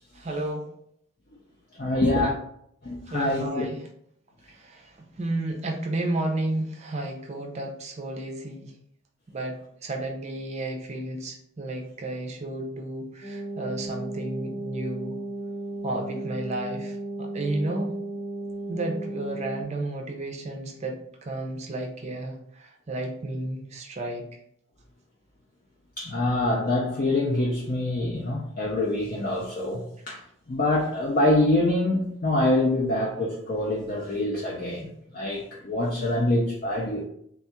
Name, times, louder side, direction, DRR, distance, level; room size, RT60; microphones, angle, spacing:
voice 1, 0.1-0.7 3.1-3.8 4.5-8.7 9.3-15.2 15.8-18.0 18.7-24.3, right 2 dB, 30° right, 0.5 m, -32 dB
voice 2, 1.8-2.3 2.8-3.7 26.0-30.2 30.5-34.9 35.1-37.0, left 1 dB, 40° left, 0.5 m, -25 dB
sound 1, 13.2-19.6, right 2 dB, 70° left, 1.6 m, -35 dB
3.5 x 2.4 x 4.2 m
head